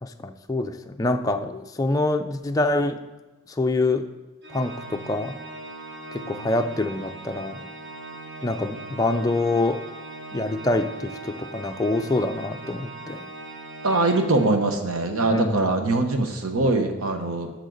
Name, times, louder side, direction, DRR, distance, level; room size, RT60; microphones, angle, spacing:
voice 1, 0.0-3.0 3.6-4.1 4.5-5.3 6.1-7.7 8.4-9.8 10.3-13.3 15.3-15.7, left 2 dB, 15° left, 6 dB, 0.4 m, -25 dB
Organ, 4.4-15.0, right 2 dB, 50° right, 0.9 m, -40 dB
voice 2, 13.8-17.5, right 2 dB, 80° right, 5 dB, 1.0 m, -22 dB
11.5 x 6.5 x 3.9 m, 1.1 s
head